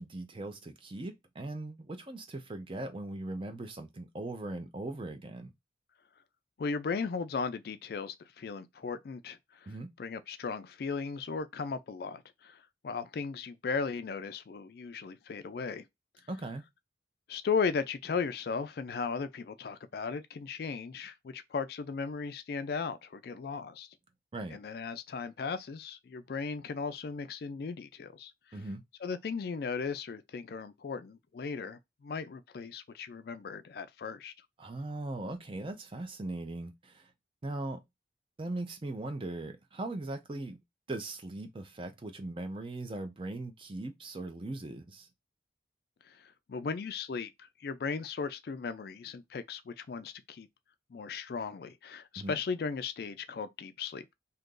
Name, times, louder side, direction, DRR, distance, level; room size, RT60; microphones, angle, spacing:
voice 1, 0.0-5.5 9.7-9.9 16.3-16.7 24.3-24.6 28.5-28.8 34.6-37.1 37.4-37.8 38.4-40.6 40.9-45.1 52.2-52.4, right 2 dB, 30° right, 0.5 m, -39 dB
voice 2, 6.6-9.7 10.0-15.8 17.3-23.9 24.5-28.3 29.0-34.3 46.1-50.5 50.9-54.0, left 5 dB, 55° left, 0.3 m, -36 dB
2.8 x 2.5 x 3.7 m
head